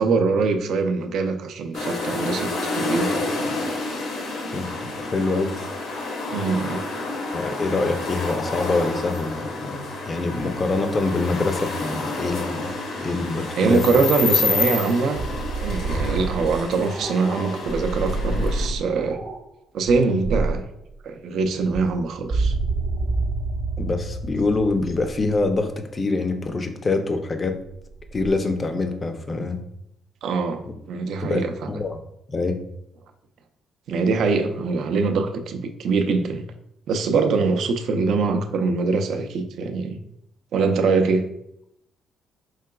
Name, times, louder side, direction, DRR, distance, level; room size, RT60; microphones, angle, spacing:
voice 1, 0.0-3.6 6.3-6.8 13.6-15.2 15.6-19.2 19.7-20.6 21.0-22.5 30.2-31.7 33.9-36.4 36.9-40.0 40.5-41.3, right 4 dB, 65° right, 0.4 m, -23 dB
sound 1, 1.7-18.7, left 3 dB, 75° left, 0.9 m, -29 dB
voice 2, 4.5-5.5 7.3-14.0 23.8-27.6 28.1-29.6 30.7-30.8 31.2-32.0 32.3-32.6, left 3 dB, 25° left, 0.4 m, -25 dB
sound 2, 15.1-19.4 19.9-20.7 21.4-25.6 27.8-28.3, right 3 dB, 45° right, 0.9 m, -28 dB
4.6 x 3.7 x 2.2 m
cardioid pair, 140°, 0 cm